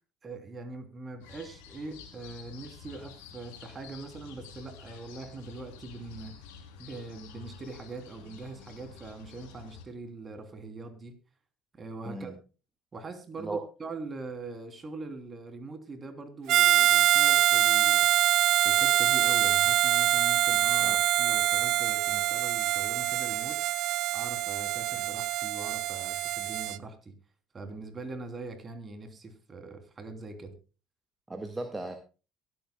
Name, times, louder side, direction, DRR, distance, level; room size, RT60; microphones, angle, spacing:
voice 1, 0.2-6.3 6.8-11.1 11.7-12.3 12.9-18.1 18.6-23.6 24.1-27.1 27.5-30.5, right 3 dB, 35° right, 7 dB, 3.2 m, -42 dB
sound 1, 1.2-9.8, left 6 dB, 80° left, 3.1 m, -49 dB
Harmonica, 16.5-26.8, right 14 dB, 60° right, 0.5 m, -24 dB
voice 2, 31.3-32.0, right 2 dB, 15° right, 5 dB, 1.7 m, -36 dB
23.0 x 8.6 x 2.3 m, 0.33 s
hypercardioid pair, 70°, 0 cm